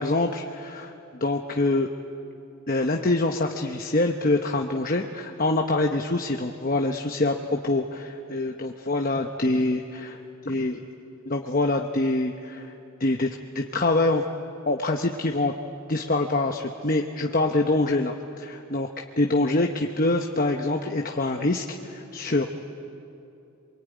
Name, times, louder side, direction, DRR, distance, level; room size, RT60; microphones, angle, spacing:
voice 1, 0.0-1.9 2.7-10.2 10.5-10.8 11.3-12.7 13.0-13.3 13.5-14.3 14.7-15.5 15.9-18.9 19.2-22.5, left 2 dB, 40° left, 3 dB, 1.0 m, -25 dB
27.0 x 23.0 x 9.4 m, 2.8 s
head